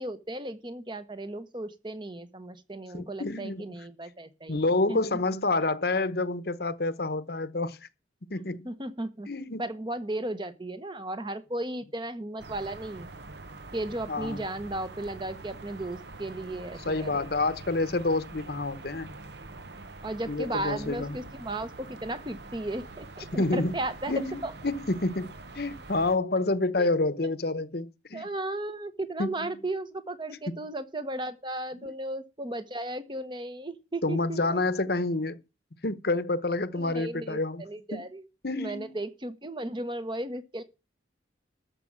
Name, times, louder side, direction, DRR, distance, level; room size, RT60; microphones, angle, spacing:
voice 1, 0.0-5.0 8.6-9.3 9.6-13.1 13.7-17.2 20.0-24.5 26.8-26.9 28.1-34.6 36.7-38.2 38.6-40.6, right 1 dB, 25° right, 1.1 m, -35 dB
voice 2, 2.9-3.6 4.5-7.8 8.3-8.7 9.3-9.6 14.1-14.4 16.8-19.1 20.3-21.2 23.3-23.7 24.1-24.4 24.6-28.3 29.2-29.6 30.5-30.6 31.8-31.9 34.0-35.4 35.8-37.6 37.9-38.1 38.4-39.0, left 2 dB, 55° left, 1.0 m, -28 dB
sound 1, 12.4-26.2, right 2 dB, 65° right, 1.0 m, -45 dB
13.5 x 5.4 x 7.5 m
head